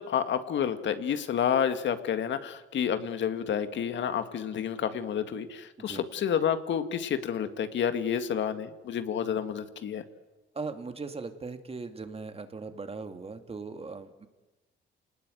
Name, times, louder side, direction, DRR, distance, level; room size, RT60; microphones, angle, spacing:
voice 1, 0.0-10.0, left 8 dB, 70° left, 10 dB, 2.0 m, -29 dB
voice 2, 10.5-14.3, right 4 dB, 30° right, 8 dB, 2.6 m, -39 dB
28.5 x 19.5 x 9.3 m, 1.1 s
cardioid pair, 90°, 20 cm